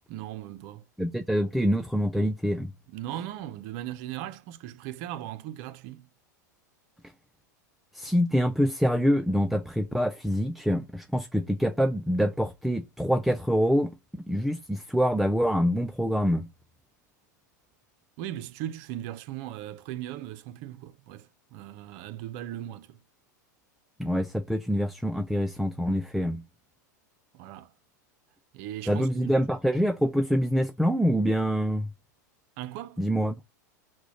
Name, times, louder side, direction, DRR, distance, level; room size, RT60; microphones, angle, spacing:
voice 1, 0.1-0.8 2.9-6.1 18.2-23.0 27.3-27.7 28.5-29.4 32.6-33.0, right 12 dB, 55° right, 0.6 m, -38 dB
voice 2, 1.0-2.7 7.9-13.9 14.3-16.5 24.0-26.4 28.9-31.9 33.0-33.3, equal, ahead, 0.3 m, -25 dB
6.1 x 2.2 x 2.9 m
hypercardioid pair, 95°, 10 cm